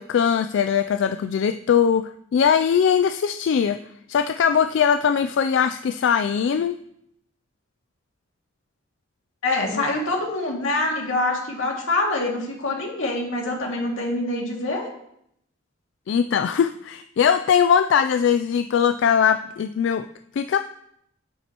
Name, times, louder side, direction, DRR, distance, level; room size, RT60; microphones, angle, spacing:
voice 1, 0.0-2.0 2.3-3.8 4.1-6.8 9.7-9.8 16.1-20.1 20.4-20.6, left 7 dB, 65° left, 9 dB, 0.3 m, -20 dB
voice 2, 9.4-14.9, left 2 dB, 85° left, -1 dB, 2.2 m, -25 dB
9.4 x 9.2 x 2.9 m, 0.75 s
head